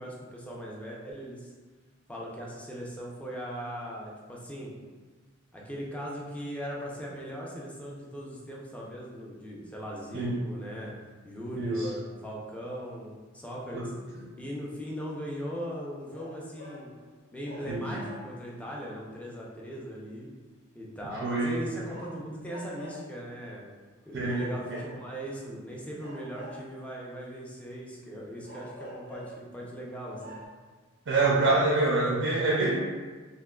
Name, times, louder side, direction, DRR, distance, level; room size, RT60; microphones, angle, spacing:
voice 1, 0.0-1.5 2.1-4.7 5.5-10.9 11.2-13.9 14.4-16.9 17.3-20.3 20.7-23.6 24.1-30.4, equal, 5° left, -4 dB, 0.5 m, -39 dB
voice 2, 11.5-11.9 13.7-13.9 17.7-18.0 21.2-21.6 24.1-24.4 24.7-24.8 31.1-32.8, right 2 dB, 60° right, -4 dB, 0.4 m, -26 dB
sound 1, 16.1-16.9 17.4-18.5 21.9-23.1 24.2-25.3 26.0-27.0 28.4-29.5 29.9-30.0 30.2-30.4, equal, 80° left, 1.5 m, -46 dB
3.5 x 2.8 x 2.3 m, 1.4 s
head